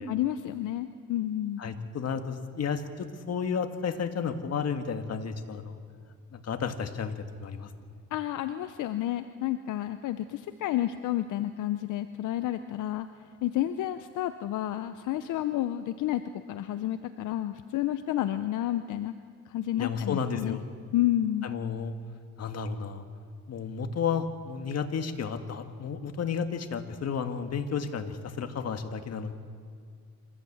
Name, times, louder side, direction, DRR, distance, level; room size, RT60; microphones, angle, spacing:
voice 1, 0.0-1.6 8.1-13.1 13.4-16.2 16.5-19.1 19.5-20.6 20.9-21.5, left 13 dB, 80° left, 10 dB, 0.7 m, -30 dB
voice 2, 1.6-5.8 6.3-7.7 19.8-20.6 21.4-22.0 22.4-23.0 23.5-29.3, left 6 dB, 55° left, 7 dB, 1.8 m, -32 dB
27.0 x 14.0 x 8.7 m, 2.2 s
cardioid pair, 90°, 30 cm